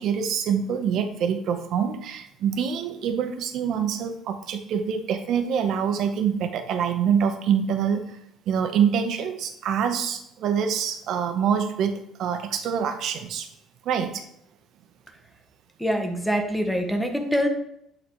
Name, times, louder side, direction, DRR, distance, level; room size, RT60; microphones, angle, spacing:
voice 1, 0.0-8.0 8.5-13.5 13.8-14.2, right 7 dB, 60° right, 7 dB, 0.7 m, -25 dB
voice 2, 15.8-17.5, equal, ahead, 4 dB, 0.8 m, -24 dB
8.0 x 4.0 x 2.9 m, 0.75 s
cardioid pair, 145°, 0 cm